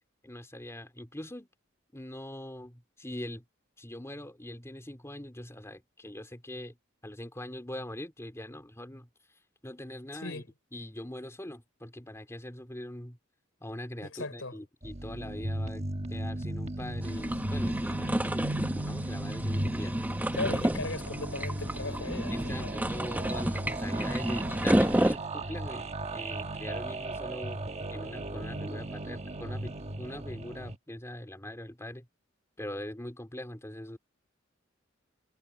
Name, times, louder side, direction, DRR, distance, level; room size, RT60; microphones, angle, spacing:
voice 1, 0.2-1.5 1.9-3.4 3.8-6.8 7.0-9.1 9.6-10.4 10.7-13.2 13.6-15.8 16.1-20.3 22.3-32.1 32.6-34.0, left 1 dB, 15° left, 3.0 m, -42 dB
voice 2, 10.1-10.5 14.0-14.6 20.3-22.7, left 3 dB, 85° left, 3.9 m, -37 dB
sound 1, 14.8-30.8, right 1 dB, 35° right, 1.3 m, -36 dB
sound 2, 17.0-25.2, right 1 dB, 10° right, 0.9 m, -30 dB
head